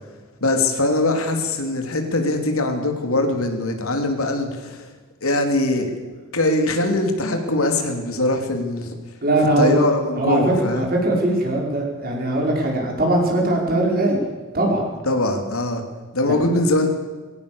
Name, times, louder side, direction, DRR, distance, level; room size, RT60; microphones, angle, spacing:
voice 1, 0.4-4.9 5.2-5.9 6.3-8.9 9.6-10.9 15.0-15.8 16.1-16.9, left 2 dB, 85° left, 4 dB, 3.3 m, -22 dB
voice 2, 9.2-9.8 10.2-14.2 14.5-14.9 16.3-16.5, right 1 dB, 45° right, 0 dB, 5.5 m, -20 dB
21.5 x 17.5 x 7.1 m, 1.3 s
head